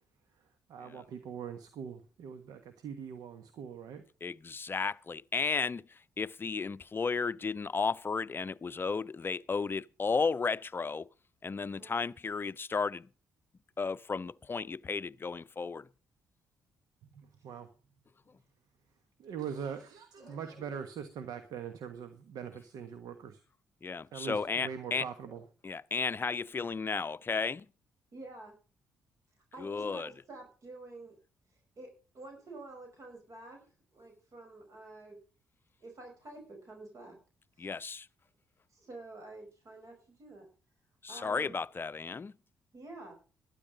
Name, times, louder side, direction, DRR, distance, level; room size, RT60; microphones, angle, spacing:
voice 1, 0.7-4.0 17.1-17.7 19.2-23.4 24.1-25.4, right 7 dB, 70° right, 1.4 m, -42 dB
voice 2, 4.2-11.1 11.4-13.1 13.8-15.9 20.2-20.4 23.8-25.1 25.6-27.7 29.6-30.1 37.6-38.1 41.0-42.3, left 4 dB, 35° left, 0.6 m, -34 dB
voice 3, 11.7-12.1 28.1-28.5 29.5-31.1 31.8-35.2 35.8-37.2 37.6-37.7 38.7-40.5 41.1-41.6 42.7-43.1, right 2 dB, 50° right, 5.6 m, -49 dB
12.0 x 10.5 x 5.1 m
hypercardioid pair, 50°, 7 cm